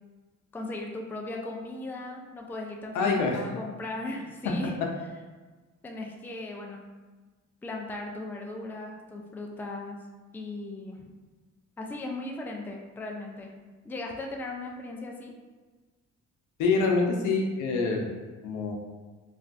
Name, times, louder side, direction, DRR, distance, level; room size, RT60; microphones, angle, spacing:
voice 1, 0.5-4.8 5.8-6.8 7.6-10.0 10.3-11.1 11.8-13.5 13.8-15.3, left 2 dB, 5° left, 0 dB, 0.3 m, -37 dB
voice 2, 2.9-3.4 16.6-18.1 18.4-18.7, left 4 dB, 80° left, 0 dB, 0.6 m, -25 dB
3.2 x 2.2 x 2.5 m, 1.3 s
cardioid pair, 90°, 30 cm